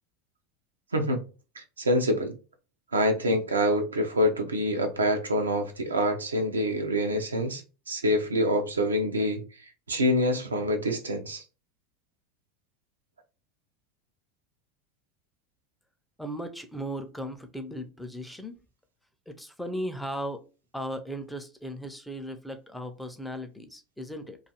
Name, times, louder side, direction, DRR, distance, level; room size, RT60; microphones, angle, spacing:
voice 1, 1.6-2.3 2.9-7.6 7.9-9.4 9.9-11.4, equal, 85° right, 0.5 m, -26 dB
voice 2, 16.2-18.6 19.3-20.4 20.7-24.4, equal, 5° left, 0.5 m, -37 dB
2.5 x 2.3 x 2.8 m
hypercardioid pair, 80°, 0 cm